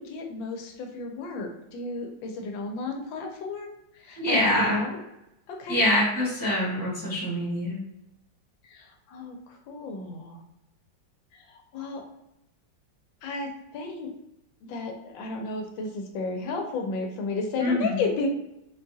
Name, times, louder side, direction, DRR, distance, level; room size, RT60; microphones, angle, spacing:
voice 1, 0.0-3.7 3.9-5.0 5.5-5.8 8.6-10.4 11.3-12.0 13.2-14.1 14.7-18.3, left 3 dB, 90° left, 2 dB, 1.4 m, -33 dB
voice 2, 4.2-4.8 5.7-7.8 17.6-18.0, left 1 dB, 15° right, -7 dB, 0.8 m, -25 dB
4.3 x 2.3 x 2.7 m, 0.87 s
omnidirectional pair, 2.1 m